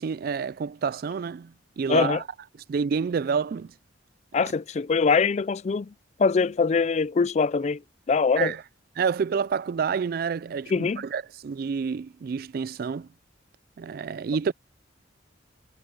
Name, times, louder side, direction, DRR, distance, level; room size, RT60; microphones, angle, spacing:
voice 1, 0.0-2.2 2.7-3.7 8.4-8.6 9.0-13.1 13.8-14.5, right 6 dB, 50° right, 0.3 m, -28 dB
voice 2, 1.9-2.2 4.3-5.9 6.2-7.8 8.1-8.5 10.7-11.0, left 5 dB, 35° left, 0.3 m, -23 dB
head